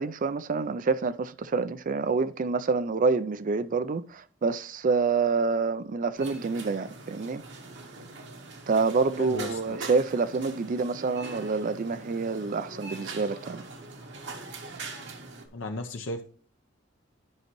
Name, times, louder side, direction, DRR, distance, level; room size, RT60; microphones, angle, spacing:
voice 1, 0.0-7.4 8.7-13.6, right 4 dB, 45° right, 0.4 m, -27 dB
sound 1, 6.2-15.5, right 3 dB, 65° right, 1.2 m, -42 dB
voice 2, 9.2-9.8 15.5-16.2, left 2 dB, 70° left, 0.7 m, -35 dB
10.5 x 5.5 x 3.0 m
head